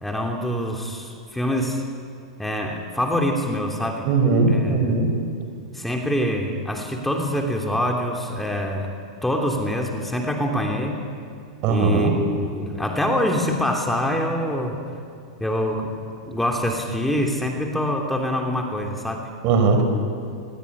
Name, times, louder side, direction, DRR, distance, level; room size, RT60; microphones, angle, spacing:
voice 1, 0.0-1.8 2.4-4.1 4.5-5.1 5.7-8.9 9.2-11.1 11.7-14.8 15.4-16.0 16.3-19.3, left 1 dB, 5° left, 2 dB, 3.2 m, -25 dB
voice 2, 4.1-5.1 11.6-12.2 19.4-19.8, right 4 dB, 50° right, 6 dB, 5.2 m, -19 dB
25.0 x 20.5 x 9.9 m, 2.3 s
hypercardioid pair, 110°, 3 cm